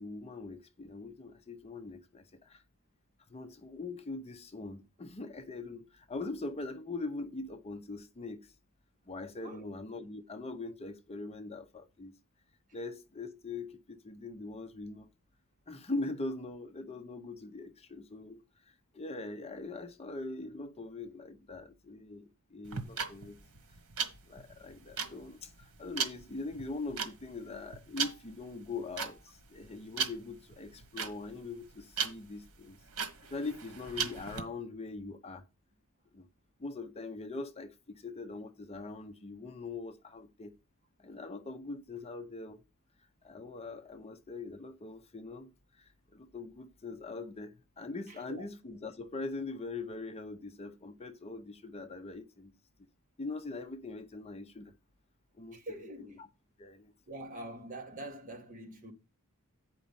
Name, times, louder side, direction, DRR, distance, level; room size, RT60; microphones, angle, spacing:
voice 1, 0.0-2.6 3.3-8.5 9.1-12.1 12.7-15.1 15.7-23.4 24.3-32.8 33.2-35.4 36.1-36.3 36.6-40.5 41.0-42.6 43.2-45.5 45.8-52.5 53.2-54.7 55.4-56.3 56.6-56.9, left 3 dB, 30° left, 0.6 m, -42 dB
sound 1, 22.6-34.4, right 6 dB, 90° right, 1.4 m, -37 dB
voice 2, 55.5-56.2 57.1-58.9, right 1 dB, 35° right, 1.5 m, -44 dB
8.2 x 5.1 x 5.4 m
head